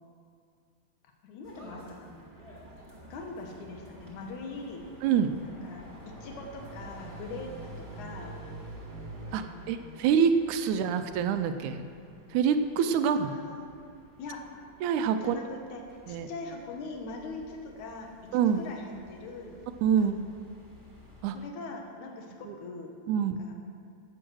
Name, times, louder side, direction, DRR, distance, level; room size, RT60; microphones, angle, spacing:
voice 1, 1.2-2.1 3.1-4.8 5.4-7.5 7.9-8.4 9.2-10.1 10.7-10.8 13.0-13.7 14.2-14.4 15.2-19.5 20.0-20.2 21.3-23.5, left 3 dB, 70° left, 2 dB, 2.7 m, -42 dB
sound 1, 1.4-21.2, equal, 20° right, 1.8 m, -52 dB
sound 2, 5.7-9.3, right 2 dB, 65° right, 1.9 m, -44 dB
voice 2, 9.3-11.8 12.3-13.3 14.8-15.4 16.1-16.3 18.3-18.6 19.8-20.2 21.2-21.4 22.5-22.6 23.1-23.4, right 7 dB, 80° right, 9 dB, 2.0 m, -26 dB
12.5 x 8.2 x 6.3 m, 2.3 s
omnidirectional pair, 3.6 m